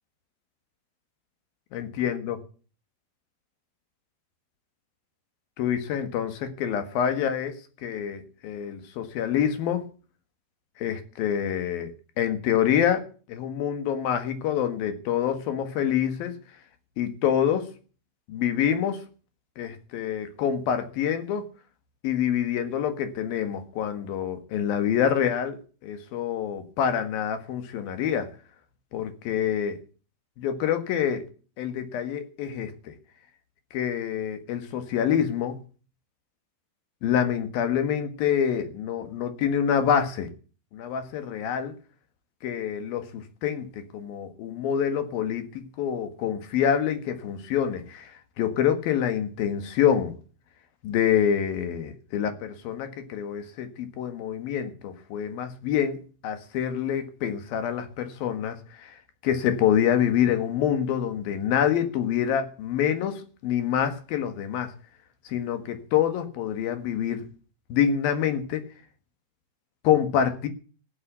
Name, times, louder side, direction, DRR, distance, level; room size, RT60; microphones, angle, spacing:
voice 1, 1.7-2.4 5.6-9.8 10.8-16.3 17.0-17.7 18.3-19.0 19.6-21.5 22.0-28.3 28.9-29.8 30.4-31.3 31.6-32.9 33.7-35.6 37.0-40.3 40.7-41.7 42.4-50.1 50.8-64.7 65.2-67.3 67.7-68.6 69.8-70.5, left 9 dB, 70° left, 9 dB, 3.4 m, -26 dB
14.5 x 10.0 x 8.2 m, 0.39 s
omnidirectional pair, 4.6 m